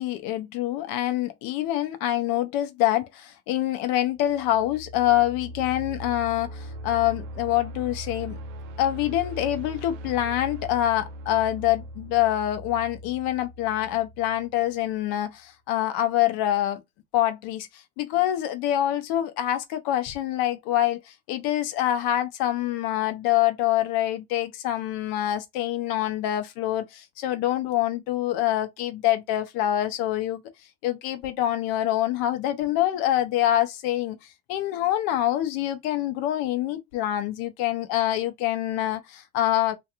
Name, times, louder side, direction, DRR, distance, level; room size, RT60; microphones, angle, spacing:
voice 1, 0.0-8.4 8.8-16.8 17.1-30.4 30.8-34.2 34.5-39.8, left 13 dB, 70° left, 0.7 m, -25 dB
sound 1, 4.2-15.0, equal, 75° right, 0.6 m, -40 dB
2.8 x 2.4 x 2.3 m
hypercardioid pair, 60°, 37 cm